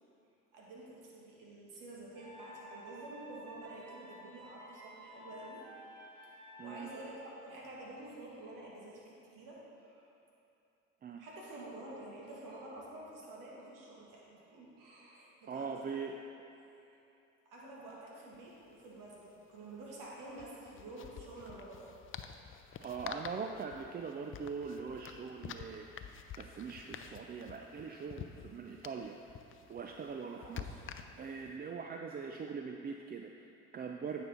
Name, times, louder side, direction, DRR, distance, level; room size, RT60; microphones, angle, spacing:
voice 1, 0.5-5.6 5.9-10.1 11.2-16.0 16.6-17.0 17.5-21.9 22.4-22.6 30.4-30.8, right 1 dB, 65° right, -4 dB, 2.0 m, -49 dB
sound 1, 2.1-7.2, equal, 85° right, 1.3 m, -52 dB
voice 2, 15.5-16.2 22.8-26.1 26.4-29.2 29.7-30.7 31.2-34.2, right 5 dB, 30° right, 3 dB, 0.4 m, -42 dB
sound 2, 18.3-18.4 18.6-18.8 20.3-31.5, left 8 dB, 40° left, 0.5 m, -49 dB
9.2 x 5.6 x 4.3 m, 2.8 s
supercardioid pair, 70°, 34 cm